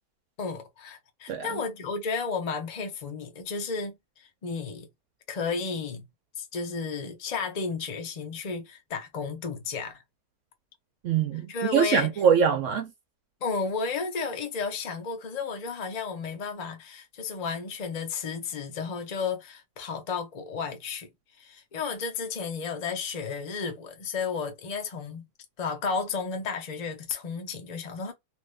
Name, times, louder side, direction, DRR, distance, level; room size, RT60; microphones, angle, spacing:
voice 1, 0.4-4.9 5.3-6.1 6.4-10.0 11.5-12.1 13.4-21.1 21.4-25.2 25.6-28.1, left 5 dB, 65° left, 0.4 m, -33 dB
voice 2, 11.0-12.9, right 7 dB, 70° right, 0.8 m, -23 dB
2.9 x 2.6 x 3.3 m
omnidirectional pair, 1.7 m